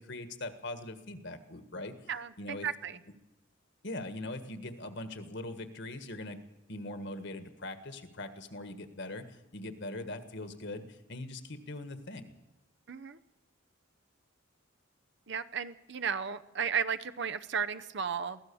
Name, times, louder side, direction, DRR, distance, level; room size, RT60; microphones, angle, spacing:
voice 1, 0.0-2.1 2.4-2.7 3.8-6.4 6.7-12.3, left 2 dB, 55° left, 9 dB, 1.7 m, -41 dB
voice 2, 2.1-3.0 12.9-13.2 15.3-18.4, right 6 dB, 55° right, 12 dB, 0.8 m, -34 dB
23.0 x 16.0 x 7.1 m, 1.0 s
head